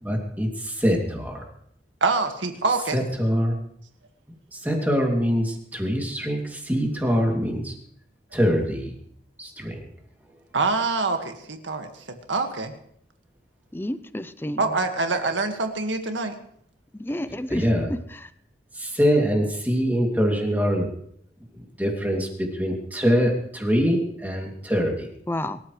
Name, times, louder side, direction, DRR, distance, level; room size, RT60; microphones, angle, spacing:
voice 1, 0.0-1.4 2.9-3.6 4.5-7.7 8.3-8.9 9.4-9.9 17.5-17.9 18.7-20.9 21.5-25.1, equal, 10° right, 2.8 m, -24 dB
voice 2, 2.0-3.0 10.5-11.9 12.3-12.7 14.6-16.4, right 3 dB, 85° right, 1.9 m, -25 dB
voice 3, 13.7-14.7 16.9-17.7 18.1-18.3 25.3-25.6, left 1 dB, 10° left, 0.6 m, -30 dB
24.0 x 13.5 x 3.3 m
head